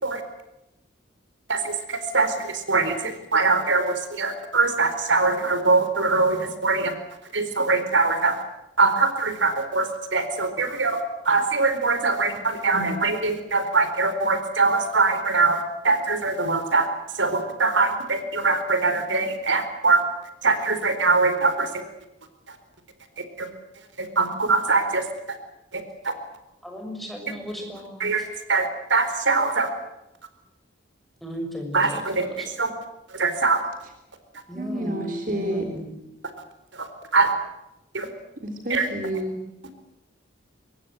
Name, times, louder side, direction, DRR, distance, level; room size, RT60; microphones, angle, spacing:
voice 1, 1.5-6.9 7.3-8.4 8.8-16.9 17.1-20.0 20.4-21.7 23.4-23.5 24.0-25.0 25.7-26.1 28.0-28.2 28.5-29.7 31.7-32.7 33.1-33.6 36.7-37.3 37.9-38.1 38.7-38.9, right 3 dB, 80° right, 9 dB, 4.4 m, -22 dB
voice 2, 26.6-28.0 31.2-32.5 34.5-36.0, right 1 dB, ahead, 2 dB, 6.4 m, -35 dB
voice 3, 34.5-35.7 38.4-39.3, equal, 45° right, 4 dB, 3.4 m, -29 dB
24.5 x 22.0 x 7.8 m, 0.92 s
head